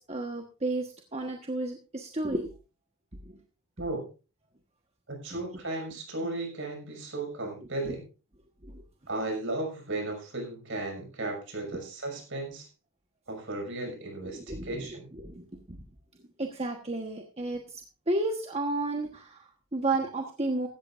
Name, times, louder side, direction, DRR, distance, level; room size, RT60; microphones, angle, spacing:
voice 1, 0.1-2.5 3.3-3.4 8.6-8.8 14.3-14.9 15.2-15.8 16.4-20.7, right 2 dB, 30° right, 3 dB, 1.3 m, -32 dB
voice 2, 5.1-8.0 9.1-12.7 13.3-15.1, right 2 dB, 55° right, 2 dB, 6.3 m, -35 dB
16.0 x 13.5 x 2.6 m, 0.33 s
head